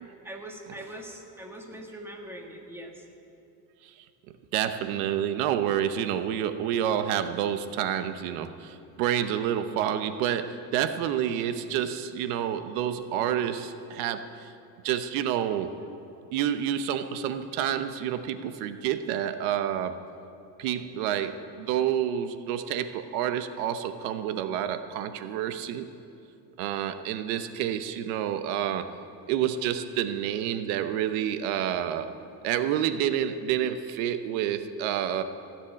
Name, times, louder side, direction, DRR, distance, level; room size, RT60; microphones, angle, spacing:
voice 1, 0.2-3.0, right 1 dB, 5° right, 1 dB, 1.4 m, -42 dB
voice 2, 4.5-14.5 14.8-15.7 16.3-20.0 20.6-25.9 26.6-28.9 29.3-32.1 32.4-35.2, right 10 dB, 90° right, 10 dB, 0.9 m, -29 dB
15.5 x 7.5 x 9.9 m, 2.6 s
cardioid pair, 150°, 43 cm